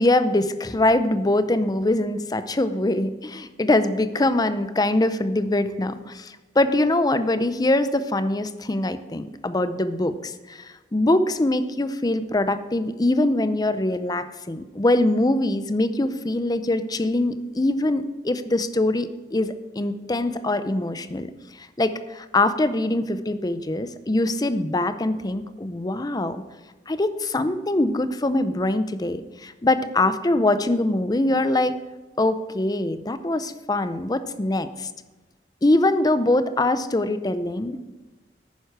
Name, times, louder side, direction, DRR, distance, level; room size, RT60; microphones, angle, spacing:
voice 1, 0.0-21.3 21.6-26.4 26.9-31.7 32.2-34.9 35.6-37.8, left 2 dB, 20° left, 12 dB, 0.6 m, -23 dB
11.0 x 9.4 x 4.7 m, 1.2 s
head